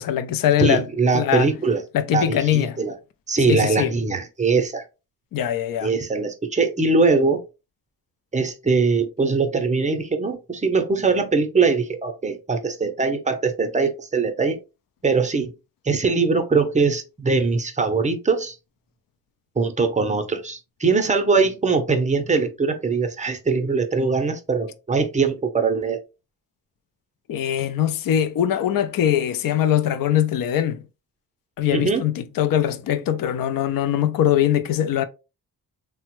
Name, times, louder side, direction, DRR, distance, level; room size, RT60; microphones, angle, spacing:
voice 1, 0.0-0.8 1.1-1.5 1.9-2.8 3.5-3.9 5.3-5.9 27.3-30.8 31.6-35.1, left 11 dB, 60° left, 0.5 m, -22 dB
voice 2, 0.6-1.8 2.1-2.9 3.3-4.8 5.8-7.4 8.3-14.6 15.0-15.5 15.8-18.6 19.6-26.0 31.7-32.1, right 4 dB, 20° right, 0.6 m, -21 dB
3.3 x 2.1 x 3.0 m
cardioid pair, 105°, 38 cm